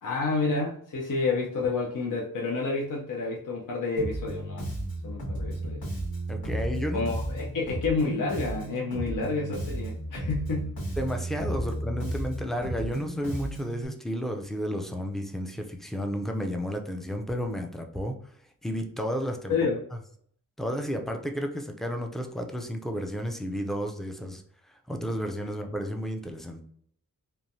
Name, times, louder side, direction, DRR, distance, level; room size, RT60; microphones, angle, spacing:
voice 1, 0.0-4.6 5.0-5.8 6.9-10.7 19.5-19.7, left 3 dB, 65° left, -3 dB, 0.6 m, -29 dB
Bass guitar, 4.0-13.9, right 1 dB, 85° left, 1.4 m, -33 dB
voice 2, 6.3-7.0 11.0-18.1 18.6-19.5 20.6-24.4 24.9-26.6, equal, ahead, 4 dB, 0.4 m, -32 dB
3.1 x 2.2 x 2.6 m, 0.64 s
wide cardioid pair, 80°, 35 cm